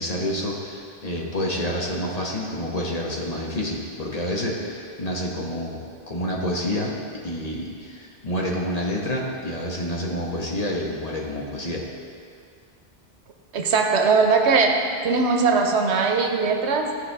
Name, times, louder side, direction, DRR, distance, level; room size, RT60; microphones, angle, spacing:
voice 1, 0.0-5.8 6.1-6.9 7.2-11.8, left 1 dB, 40° left, -2 dB, 1.1 m, -28 dB
voice 2, 13.5-17.0, right 4 dB, 90° right, 4 dB, 1.1 m, -20 dB
14.0 x 4.7 x 3.4 m, 2.3 s
omnidirectional pair, 1.1 m